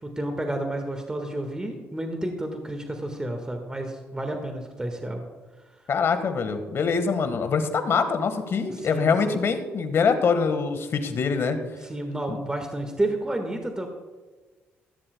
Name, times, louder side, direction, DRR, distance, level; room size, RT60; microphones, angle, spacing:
voice 1, 0.0-5.3 8.7-9.1 11.8-13.9, right 1 dB, 15° right, 3 dB, 1.7 m, -30 dB
voice 2, 5.9-11.6 12.3-12.4, left 5 dB, 60° left, 8 dB, 1.6 m, -24 dB
16.0 x 13.5 x 2.3 m, 1.3 s
supercardioid pair, 60°, 5 cm